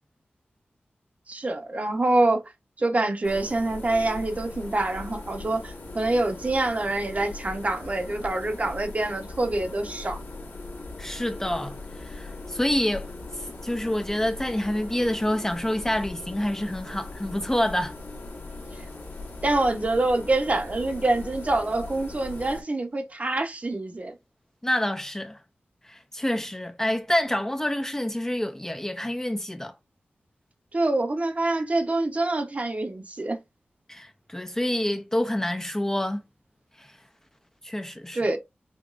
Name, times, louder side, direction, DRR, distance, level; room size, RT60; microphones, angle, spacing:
voice 1, 1.3-2.4 2.8-10.2 19.4-24.2 30.7-33.4 38.1-38.4, right 2 dB, 40° right, 0.9 m, -26 dB
sound 1, 3.2-22.6, left 2 dB, 65° left, 1.4 m, -40 dB
voice 2, 11.0-17.9 24.6-25.4 25.8-29.8 33.9-36.2 36.8-36.9 37.6-38.3, left 1 dB, 10° left, 0.5 m, -27 dB
5.2 x 3.0 x 2.5 m
wide cardioid pair, 85°, 4 cm